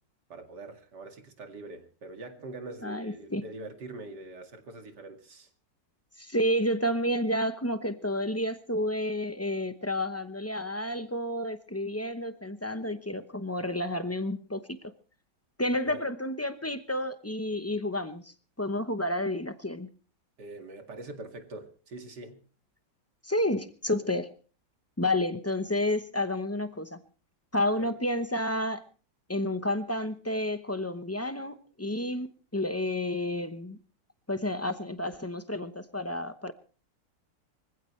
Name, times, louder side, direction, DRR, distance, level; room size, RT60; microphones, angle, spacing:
voice 1, 0.3-5.5 15.8-16.0 20.4-22.4 27.8-27.9, right 2 dB, 65° right, 5 dB, 2.8 m, -43 dB
voice 2, 2.8-3.4 6.2-14.6 15.6-19.9 23.2-24.3 25.0-27.0 27.5-28.8 29.3-33.8 34.3-36.5, left 1 dB, 15° left, 10 dB, 0.4 m, -30 dB
24.5 x 15.5 x 3.2 m, 0.38 s
omnidirectional pair, 1.9 m